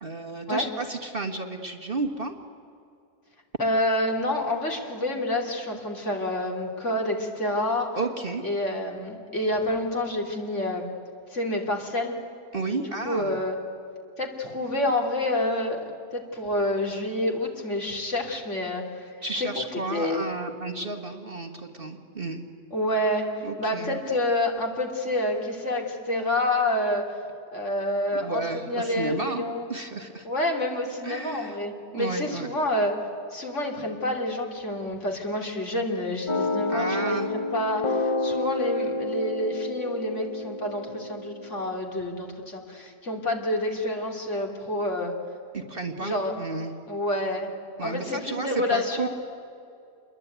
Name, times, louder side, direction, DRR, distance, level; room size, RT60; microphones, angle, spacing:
voice 1, 0.0-2.3 7.9-8.4 12.5-13.4 19.2-22.4 23.4-24.0 28.1-30.3 31.0-31.6 31.9-32.5 36.7-37.3 45.5-46.7 47.8-49.1, right 3 dB, 35° right, 4 dB, 1.7 m, -32 dB
voice 2, 3.6-8.0 8.4-10.8 11.3-12.2 12.8-13.6 14.2-19.0 19.3-20.2 22.7-27.2 27.5-29.7 30.2-32.9 33.3-45.1 46.0-46.5 46.9-47.5 47.8-49.1, left 1 dB, 50° left, 2 dB, 3.4 m, -28 dB
sound 1, 36.3-41.8, left 2 dB, 30° left, 0.6 m, -29 dB
28.0 x 21.5 x 9.3 m, 2.5 s
omnidirectional pair, 1.6 m